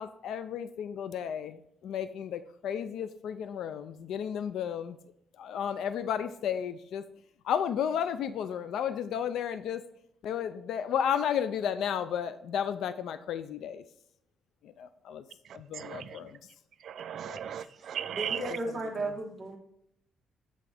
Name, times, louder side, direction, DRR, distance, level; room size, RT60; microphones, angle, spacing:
voice 1, 0.0-5.0 5.4-7.0 7.4-9.8 10.2-13.8 14.8-15.2 15.5-16.4 17.3-17.4 19.0-19.1, left 8 dB, 70° left, 0.3 m, -33 dB
voice 2, 15.8-16.1 16.8-18.6, right 9 dB, 55° right, 0.3 m, -36 dB
voice 3, 18.1-19.6, right 2 dB, 20° right, 1.2 m, -35 dB
7.8 x 3.6 x 3.4 m
cardioid pair, 140°, 0 cm